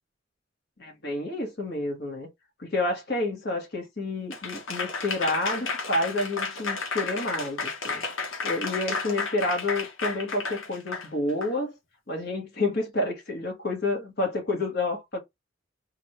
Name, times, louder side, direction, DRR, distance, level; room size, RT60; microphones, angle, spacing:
voice 1, 0.8-2.3 2.6-8.0 8.4-11.7 12.1-15.2, left 2 dB, 55° left, 1.7 m, -29 dB
Applause / Crowd, 4.3-11.5, left 4 dB, 85° left, 1.3 m, -32 dB
3.7 x 2.6 x 4.6 m
head